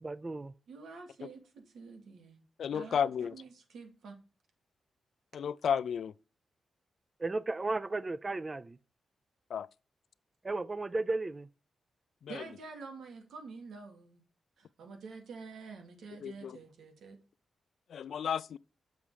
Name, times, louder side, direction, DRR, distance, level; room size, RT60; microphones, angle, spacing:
voice 1, 0.0-0.5 7.2-8.8 10.4-11.5, right 2 dB, 20° right, 0.4 m, -34 dB
voice 2, 0.7-2.4 2.7-4.2 12.3-14.2 14.6-17.2, right 4 dB, 90° right, 2.5 m, -48 dB
voice 3, 2.6-3.3 5.3-6.1 9.5-9.7 12.2-12.4 16.2-16.6 17.9-18.6, left 8 dB, 70° left, 0.4 m, -32 dB
7.1 x 6.1 x 4.9 m
wide cardioid pair, 150°, 0 cm